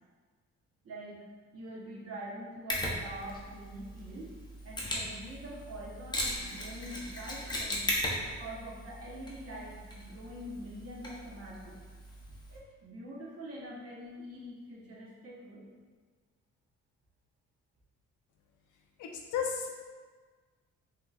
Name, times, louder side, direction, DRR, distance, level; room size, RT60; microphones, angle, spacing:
voice 1, 0.8-1.2 1.5-4.3 4.6-7.9 8.2-11.8 12.5-15.7, right 1 dB, 50° right, -5 dB, 0.9 m, -45 dB
Mechanisms, 2.7-12.6, left 1 dB, 15° left, 0.7 m, -38 dB
voice 2, 19.0-19.7, left 7 dB, 80° left, 1 dB, 0.6 m, -33 dB
3.5 x 2.9 x 2.3 m, 1.5 s
cardioid pair, 90°, 30 cm